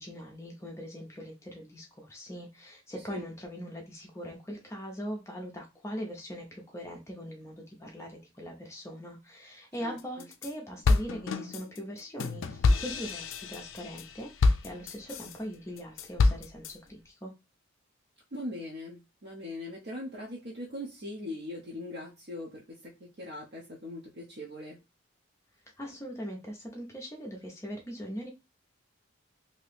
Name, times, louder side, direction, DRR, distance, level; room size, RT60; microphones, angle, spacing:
voice 1, 0.0-17.3 25.8-28.3, equal, 15° left, 0 dB, 0.5 m, -41 dB
sound 1, 10.0-10.5 10.8-15.4 15.8-16.7, left 3 dB, 65° left, 0.4 m, -27 dB
voice 2, 18.3-22.8 23.2-24.8, left 1 dB, 50° right, -3 dB, 0.7 m, -40 dB
2.9 x 2.7 x 3.3 m, 0.27 s
head